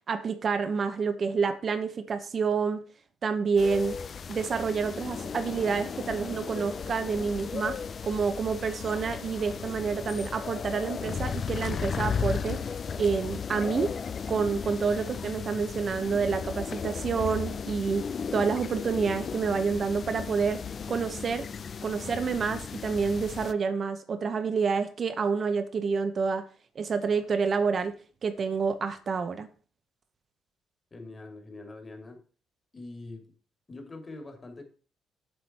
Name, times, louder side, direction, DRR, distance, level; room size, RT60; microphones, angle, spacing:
voice 1, 0.1-2.8 3.2-4.0 4.3-7.8 8.0-12.6 13.0-13.9 14.3-18.0 18.3-20.6 20.9-21.5 21.8-26.4 26.8-27.9 28.2-29.5, right 5 dB, 45° right, 0.9 m, -28 dB
sound 1, 3.6-23.5, left 6 dB, 50° left, 0.5 m, -35 dB
voice 2, 30.9-32.2 32.7-33.3 33.7-34.6, left 2 dB, 25° left, 2.6 m, -43 dB
7.9 x 7.4 x 4.3 m
cardioid pair, 90°, 0 cm